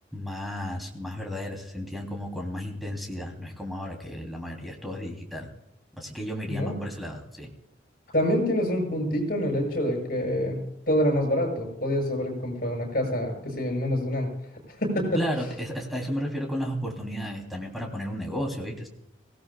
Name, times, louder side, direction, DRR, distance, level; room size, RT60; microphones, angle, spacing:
voice 1, 0.1-5.5 6.0-7.5 15.1-18.9, equal, ahead, 1 dB, 3.0 m, -33 dB
voice 2, 6.5-6.8 8.1-10.6 10.9-14.3 14.8-15.2, equal, 50° left, 1 dB, 7.1 m, -26 dB
24.5 x 17.0 x 2.3 m, 0.85 s
head